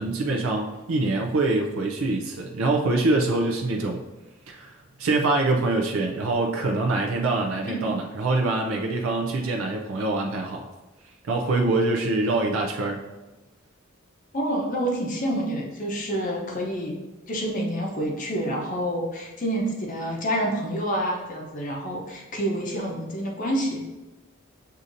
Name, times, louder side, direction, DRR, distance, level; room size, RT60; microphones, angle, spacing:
voice 1, 0.0-4.0 4.5-10.7 11.2-13.0, right 2 dB, 85° right, 2 dB, 0.5 m, -24 dB
voice 2, 7.6-7.9 14.3-17.0 17.3-23.8, right 1 dB, 40° left, -1 dB, 0.6 m, -28 dB
6.4 x 2.7 x 2.6 m, 1.1 s
head